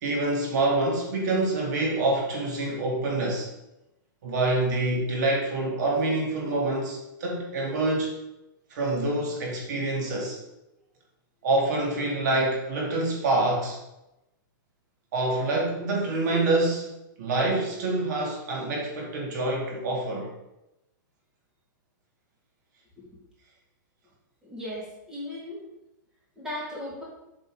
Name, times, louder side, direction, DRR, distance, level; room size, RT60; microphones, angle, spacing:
voice 1, 0.0-3.5 4.2-8.2 8.7-10.4 11.4-13.8 15.1-16.9 17.2-20.3, right 2 dB, 55° right, -1 dB, 2.8 m, -26 dB
voice 2, 24.4-25.6 26.4-27.0, left 1 dB, 5° right, -7 dB, 2.4 m, -37 dB
7.9 x 6.6 x 5.0 m, 0.92 s
supercardioid pair, 165°, 11 cm